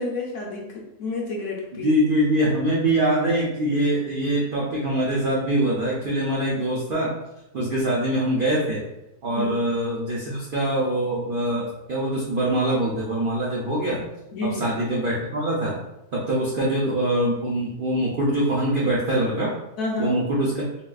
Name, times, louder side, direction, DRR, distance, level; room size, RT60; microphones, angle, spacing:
voice 1, 0.0-1.9 9.3-9.5 14.3-14.6 19.8-20.2, left 2 dB, 65° left, -2 dB, 0.9 m, -29 dB
voice 2, 1.8-7.1 7.5-8.8 9.2-14.1 14.6-15.8 16.1-19.5 20.0-20.7, right 1 dB, 75° right, -5 dB, 0.4 m, -23 dB
3.7 x 2.3 x 2.4 m, 0.89 s
omnidirectional pair, 1.6 m